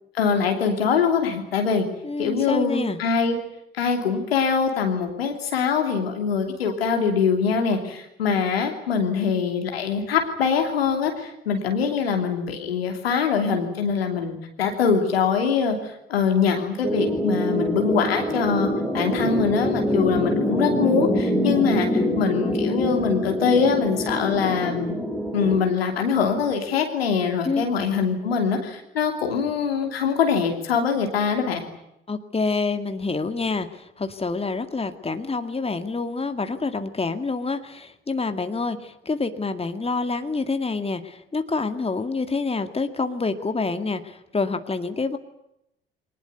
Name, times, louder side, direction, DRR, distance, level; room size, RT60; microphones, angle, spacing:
voice 1, 0.1-1.8 2.2-3.4 3.7-18.7 18.9-21.9 22.2-24.9 25.3-31.6, left 6 dB, 80° left, 4 dB, 3.0 m, -23 dB
voice 2, 2.0-3.0 27.4-27.7 32.1-45.2, left 3 dB, 20° left, 8 dB, 2.1 m, -27 dB
sound 1, 16.8-25.6, equal, 5° right, 3.8 m, -25 dB
23.0 x 20.0 x 9.5 m, 0.82 s
figure-of-eight pair, 50°, 30 cm